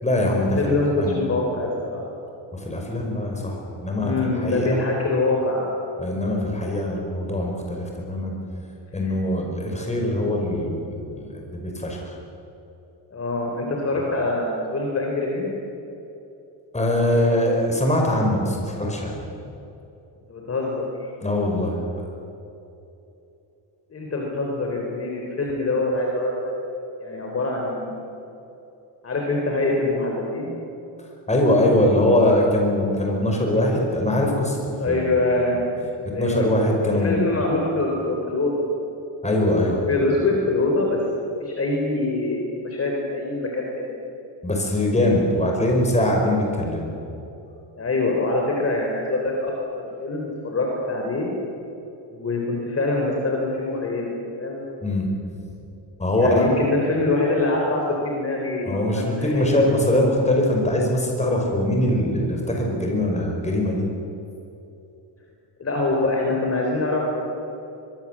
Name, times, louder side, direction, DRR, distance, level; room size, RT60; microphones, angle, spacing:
voice 1, 0.0-1.2 2.5-4.1 4.4-4.8 6.0-8.4 8.9-12.1 16.7-19.3 21.2-22.0 31.3-35.0 36.2-37.3 39.2-39.8 44.4-46.9 54.8-55.1 56.0-56.5 58.7-63.8, left 1 dB, 15° left, 0 dB, 5.3 m, -22 dB
voice 2, 0.6-2.0 4.0-5.7 9.0-9.1 13.1-15.5 20.3-21.1 23.9-26.5 27.0-28.1 29.0-30.6 34.8-35.6 36.1-36.5 36.8-38.6 39.8-41.0 41.4-43.9 47.8-51.3 52.1-54.1 54.4-54.6 56.1-59.8 65.6-67.2, left 2 dB, 30° left, 0 dB, 3.8 m, -24 dB
24.0 x 23.0 x 7.5 m, 2.9 s
cardioid pair, 150°, 45 cm